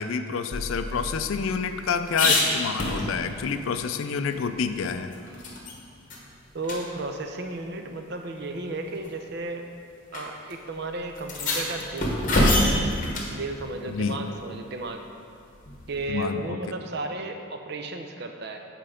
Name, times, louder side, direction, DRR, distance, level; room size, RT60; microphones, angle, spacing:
voice 1, 0.0-5.1 13.9-14.2 16.1-16.6, left 5 dB, 75° left, 9 dB, 0.4 m, -28 dB
sound 1, 0.5-3.5 3.9-4.0 4.3-5.8 6.1-6.2 6.6-6.8 7.8-7.9 8.8-9.1 10.1-10.2 10.5-10.6 11.2-13.4 15.6-16.1, left 1 dB, 40° left, 1.0 m, -26 dB
voice 2, 6.5-9.6 10.1-12.7 13.3-15.1 15.9-18.6, right 2 dB, 50° right, 5 dB, 0.5 m, -34 dB
7.6 x 4.6 x 5.1 m, 2.3 s
head